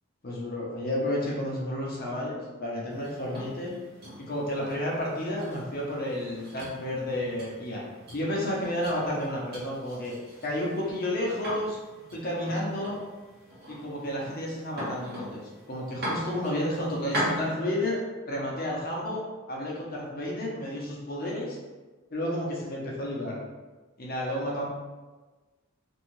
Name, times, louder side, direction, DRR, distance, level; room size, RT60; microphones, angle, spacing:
voice 1, 0.2-3.7 4.2-7.8 8.1-10.1 10.4-11.8 12.1-13.0 13.7-15.4 15.7-18.0 18.3-21.6 22.1-23.4 24.0-24.6, left 1 dB, 45° left, -4 dB, 0.7 m, -31 dB
sound 1, 2.9-17.6, equal, 50° right, 0.9 m, -40 dB
2.6 x 2.3 x 3.0 m, 1.2 s
head